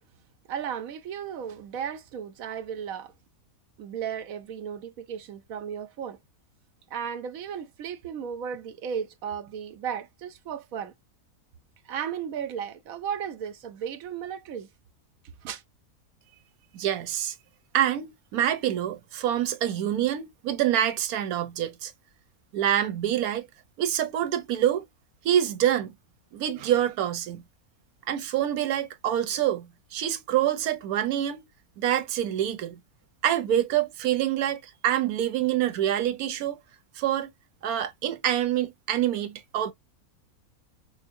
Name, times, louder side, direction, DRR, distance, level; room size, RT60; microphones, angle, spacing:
voice 1, 0.5-3.1 3.8-6.2 6.9-10.9 11.8-14.7 15.4-15.6, right 8 dB, 75° right, 1.1 m, -35 dB
voice 2, 16.7-17.4 17.7-21.9 22.5-23.5 23.8-24.8 25.2-25.9 26.3-27.4 28.1-31.5 31.8-32.8 33.2-36.6 37.0-37.3 37.6-39.7, right 11 dB, 90° right, 1.2 m, -26 dB
5.3 x 2.1 x 2.6 m
omnidirectional pair, 1.5 m